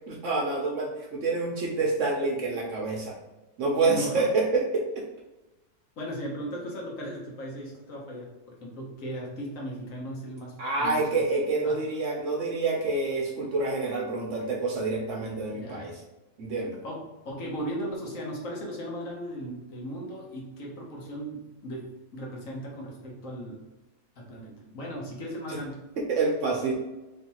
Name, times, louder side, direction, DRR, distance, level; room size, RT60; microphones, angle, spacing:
voice 1, 0.1-3.1 3.6-5.0 10.6-16.0 16.4-16.8 25.5-25.6 26.0-26.7, right 3 dB, 60° right, -1 dB, 0.9 m, -27 dB
voice 2, 3.8-4.3 6.0-11.1 11.6-11.8 15.5-15.9 16.8-23.6 24.2-25.8, equal, 60° left, -2 dB, 1.2 m, -37 dB
3.5 x 3.1 x 2.8 m, 1.1 s
omnidirectional pair, 1.7 m